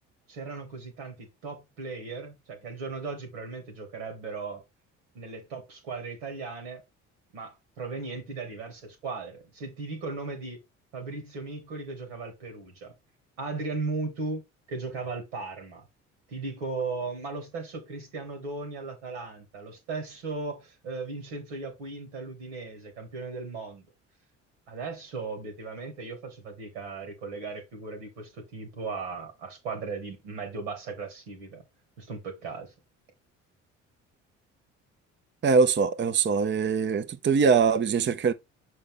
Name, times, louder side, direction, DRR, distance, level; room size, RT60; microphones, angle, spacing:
voice 1, 0.3-4.6 5.1-6.8 7.3-10.6 10.9-12.9 13.4-14.4 14.7-15.8 16.3-23.9 24.7-31.6 32.0-32.7, right 3 dB, 90° right, 2.2 m, -37 dB
voice 2, 35.4-38.3, right 5 dB, 30° right, 0.7 m, -22 dB
6.5 x 4.2 x 3.7 m
hypercardioid pair, 55°, 36 cm